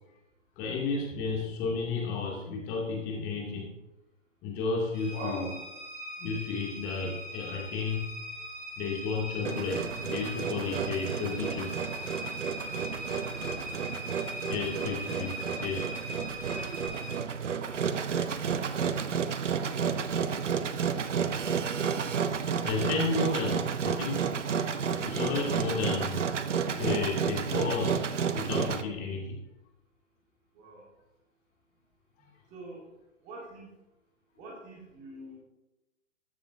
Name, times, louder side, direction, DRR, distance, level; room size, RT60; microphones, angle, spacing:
voice 1, 0.6-3.7 4.4-5.5 6.2-8.1 8.8-11.7 14.5-15.9 22.6-24.3 25.0-26.2 26.8-28.1 28.3-29.4, left 4 dB, 25° left, -1 dB, 2.4 m, -32 dB
sound 1, 4.9-17.1, equal, 5° right, 0.4 m, -41 dB
voice 2, 5.1-5.6 12.8-13.1 13.3-13.7 18.0-18.3 23.3-23.4 30.6-30.8 32.2-32.8 33.2-33.7 34.4-35.4, right 2 dB, 20° right, -2 dB, 1.7 m, -44 dB
Engine, 9.4-28.8, right 6 dB, 70° right, 0.9 m, -31 dB
14.0 x 9.8 x 2.7 m, 0.97 s
figure-of-eight pair, 130°, 38 cm